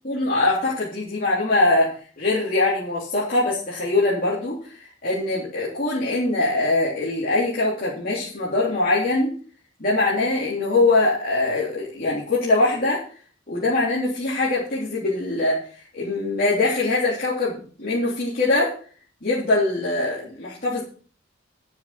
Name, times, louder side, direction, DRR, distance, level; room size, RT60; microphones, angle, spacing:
voice 1, 0.1-1.9 2.2-9.3 9.8-13.0 13.5-15.6 16.0-18.7 19.2-20.8, left 2 dB, 50° left, -8 dB, 3.6 m, -22 dB
11.5 x 7.3 x 6.1 m, 0.43 s
head